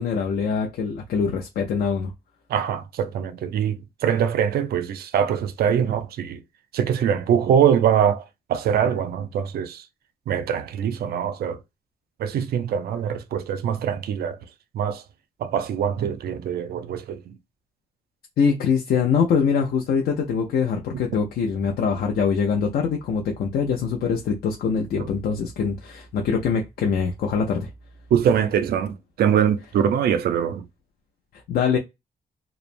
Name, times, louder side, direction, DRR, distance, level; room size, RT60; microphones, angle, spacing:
voice 1, 0.0-2.1 18.4-27.7 31.5-31.8, left 6 dB, 80° left, 0.5 m, -23 dB
voice 2, 2.5-6.4 6.7-9.8 10.3-11.6 12.2-14.4 14.7-15.0 15.4-17.3 25.0-25.1 28.1-30.6, right 8 dB, 90° right, 0.4 m, -23 dB
3.0 x 2.0 x 2.5 m
wide cardioid pair, 175°, 16 cm